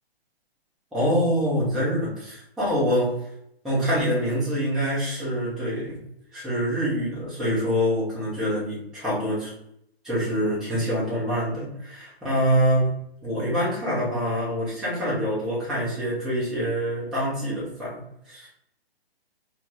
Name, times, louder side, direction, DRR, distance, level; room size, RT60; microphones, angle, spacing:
voice 1, 0.9-2.1 2.6-3.1 3.6-6.0 6.3-9.5 10.0-12.9 13.2-18.0 18.3-18.5, equal, ahead, -11 dB, 0.5 m, -25 dB
2.5 x 2.4 x 3.0 m, 0.74 s
hypercardioid pair, 150°, 31 cm